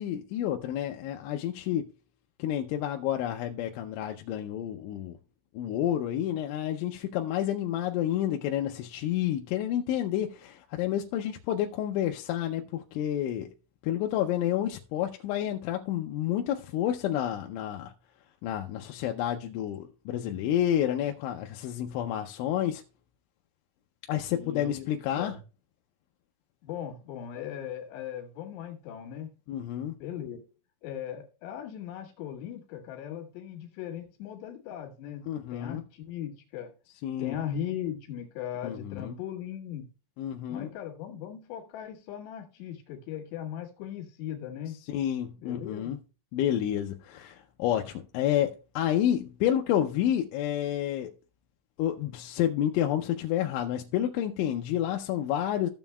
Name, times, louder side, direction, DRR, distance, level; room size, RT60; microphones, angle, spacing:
voice 1, 0.0-1.9 2.4-5.2 5.5-13.5 13.8-17.9 18.4-22.8 24.1-25.3 29.5-30.0 35.3-35.8 37.0-37.4 38.6-39.1 40.2-40.7 44.9-46.0 46.3-51.1 51.8-55.7, left 11 dB, 85° left, 3.0 m, -29 dB
voice 2, 24.3-24.9 25.2-25.4 26.6-29.3 30.0-30.4 30.8-36.7 37.2-39.9 40.5-44.8 45.4-45.9, left 10 dB, 70° left, 3.7 m, -38 dB
15.0 x 7.2 x 2.3 m
omnidirectional pair, 5.4 m